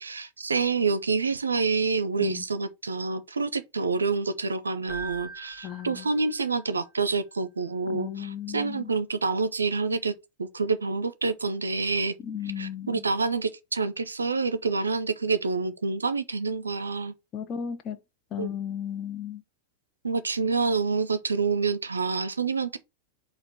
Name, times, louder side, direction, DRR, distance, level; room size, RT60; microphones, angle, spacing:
voice 1, 0.0-10.1 10.4-12.1 12.6-17.1 18.4-18.5 20.0-22.8, right 4 dB, 75° right, 0.5 m, -27 dB
Keyboard (musical), 4.9-6.7, right 4 dB, 10° left, 1.6 m, -42 dB
voice 2, 5.6-6.1 7.9-8.9 12.2-13.0 17.3-18.0 18.3-19.4, left 9 dB, 35° left, 0.5 m, -35 dB
4.3 x 2.5 x 4.8 m
figure-of-eight pair, 90°, 0 cm